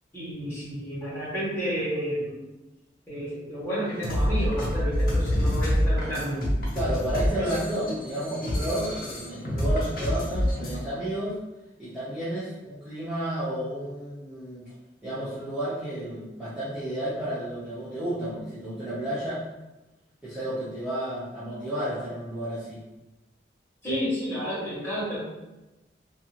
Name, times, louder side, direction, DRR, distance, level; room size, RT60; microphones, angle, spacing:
voice 1, 0.1-2.4 3.1-6.4 7.4-7.5 23.8-25.2, equal, 15° left, -9 dB, 1.1 m, -31 dB
sound 1, 3.9-10.8, equal, 55° left, 0.6 m, -27 dB
voice 2, 6.7-11.4 11.8-14.7 15.0-19.4 20.2-22.8, right 1 dB, 5° right, -13 dB, 0.6 m, -32 dB
2.6 x 2.4 x 2.8 m, 1.0 s
head